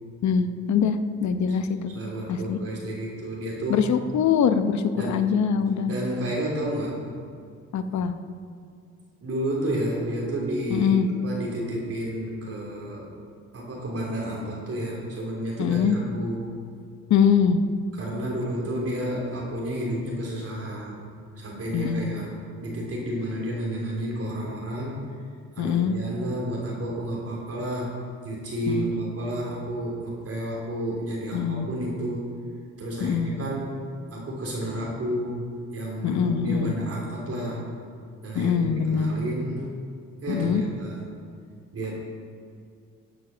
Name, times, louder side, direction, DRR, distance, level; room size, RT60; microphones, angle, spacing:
voice 1, 0.2-1.9 2.3-2.6 3.7-5.9 7.7-8.1 10.7-11.1 15.6-16.0 17.1-17.6 21.7-22.1 25.6-25.9 28.7-29.0 31.3-31.7 33.0-33.3 36.0-36.7 38.3-39.1 40.3-40.6, left 7 dB, 70° left, 9 dB, 0.9 m, -23 dB
voice 2, 1.9-3.9 4.9-5.2 5.8-7.0 9.2-13.1 13.5-16.6 17.9-21.1 21.4-22.3 22.6-25.0 25.5-28.0 28.2-32.3 32.8-33.8 34.1-37.6 38.2-39.7 40.2-41.0 41.7-41.9, right 1 dB, 50° right, -4 dB, 3.4 m, -31 dB
14.0 x 7.8 x 6.2 m, 2.2 s
cardioid pair, 90°, 30 cm